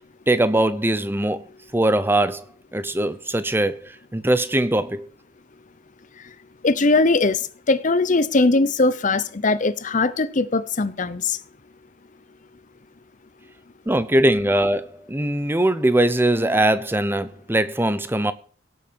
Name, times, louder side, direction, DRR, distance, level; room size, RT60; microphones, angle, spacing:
voice 1, 0.3-1.5 1.7-2.4 2.7-5.1 13.9-18.3, right 1 dB, 10° right, 0.8 m, -21 dB
voice 2, 6.6-7.4 7.7-11.4, left 3 dB, 40° left, 0.7 m, -20 dB
17.0 x 7.3 x 6.9 m
head